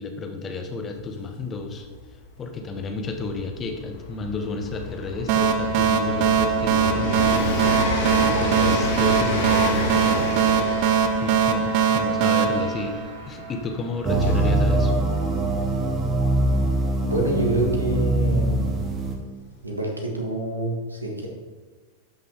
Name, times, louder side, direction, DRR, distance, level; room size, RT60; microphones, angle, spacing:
voice 1, 0.0-1.9 2.4-7.7 8.2-10.3 11.2-14.9, left 3 dB, 25° left, 4 dB, 1.1 m, -32 dB
Train, 1.0-1.1 1.2-17.9 18.8-18.9, left 2 dB, 55° left, 2.0 m, -30 dB
sound 1, 5.3-13.6, right 7 dB, 45° right, 0.7 m, -22 dB
sound 2, 14.0-19.2, right 2 dB, 20° right, 1.3 m, -23 dB
voice 2, 17.0-18.8 19.6-21.3, right 1 dB, 80° right, 0 dB, 1.6 m, -26 dB
12.0 x 5.6 x 3.7 m, 1.4 s
figure-of-eight pair, 90°, 0 cm